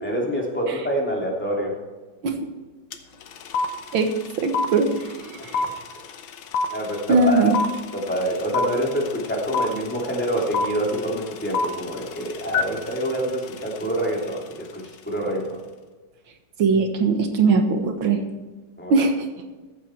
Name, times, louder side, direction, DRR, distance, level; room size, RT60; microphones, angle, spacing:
voice 1, 0.0-1.8 5.6-5.7 6.7-7.5 7.9-15.6 18.8-19.0, equal, 5° left, -2 dB, 2.7 m, -26 dB
sound 1, 2.9-3.0 3.2-14.4, left 4 dB, 85° left, 1.7 m, -27 dB
voice 2, 4.4-5.6 7.1-7.5 16.6-18.2 18.9-19.1, right 4 dB, 90° right, 6 dB, 2.2 m, -20 dB
15.0 x 8.5 x 4.5 m, 1.3 s
omnidirectional pair, 2.1 m